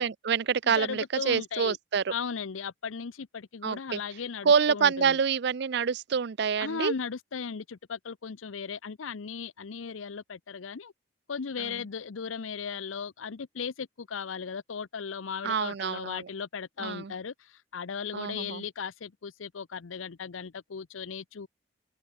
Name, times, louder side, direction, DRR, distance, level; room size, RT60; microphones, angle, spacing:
voice 1, 0.0-2.0 3.6-4.0 4.4-6.9 11.6-11.7 15.4-16.2 16.8-17.1 18.1-18.6, right 6 dB, 60° right, 0.5 m, -27 dB
voice 2, 0.7-1.8 2.1-5.2 6.6-10.9 11.3-21.5, left 6 dB, 90° left, 0.6 m, -37 dB
head